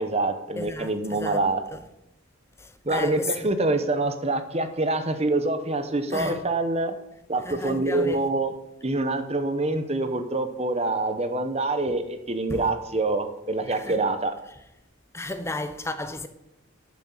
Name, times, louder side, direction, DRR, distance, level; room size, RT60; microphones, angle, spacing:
voice 1, 0.0-1.6 2.8-6.9 7.3-8.5 8.8-14.3, right 2 dB, 30° right, 0.9 m, -26 dB
voice 2, 0.6-1.4 1.7-1.8 2.6-3.4 6.1-6.4 7.4-8.2 11.9-12.0 12.5-12.7 13.7-14.0 15.1-16.3, left 2 dB, 10° left, 0.7 m, -33 dB
10.5 x 6.3 x 7.3 m
head